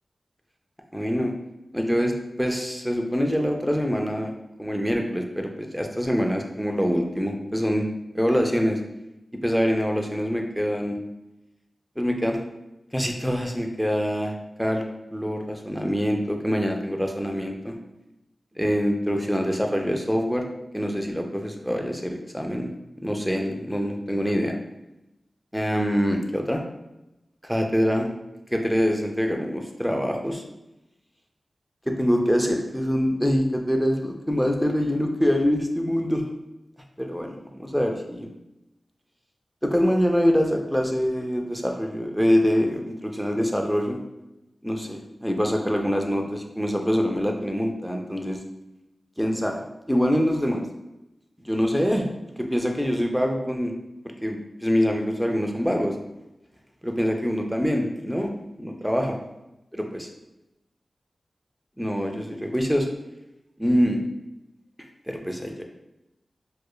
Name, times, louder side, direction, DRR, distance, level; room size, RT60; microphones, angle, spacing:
voice 1, 0.9-1.3 1.7-2.1 2.4-4.3 4.6-7.9 8.1-8.8 9.4-11.0 12.0-12.4 12.9-14.3 14.6-14.8 15.1-17.8 18.6-20.5 20.7-22.7 23.0-24.6 25.5-26.7 27.4-28.1 28.5-30.4 31.9-36.3 37.0-38.3 39.6-44.0 44.6-48.4 49.2-49.6 49.9-50.6 51.4-52.1 52.4-53.7 54.2-55.9 56.8-58.3 58.6-59.2 59.7-60.1 61.8-62.9 63.6-64.0 65.1-65.6, equal, ahead, 2 dB, 0.4 m, -24 dB
4.6 x 2.4 x 2.3 m, 0.93 s
wide cardioid pair, 75°, 0 cm